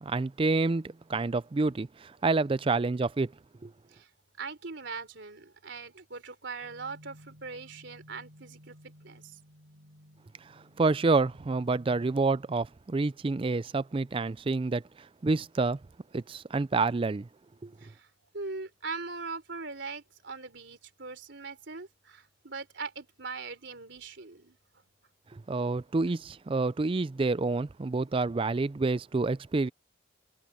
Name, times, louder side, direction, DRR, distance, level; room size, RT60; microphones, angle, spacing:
voice 1, 0.0-3.3 3.6-3.7 10.8-14.8 15.2-15.8 16.1-17.3 17.6-17.7 25.3-29.7, right 3 dB, 30° right, 0.4 m, -28 dB
voice 2, 4.4-8.8 9.0-9.4 17.8-24.6, right 4 dB, 65° right, 3.7 m, -41 dB
sound 1, 6.6-12.2, equal, 85° right, 3.0 m, -55 dB
head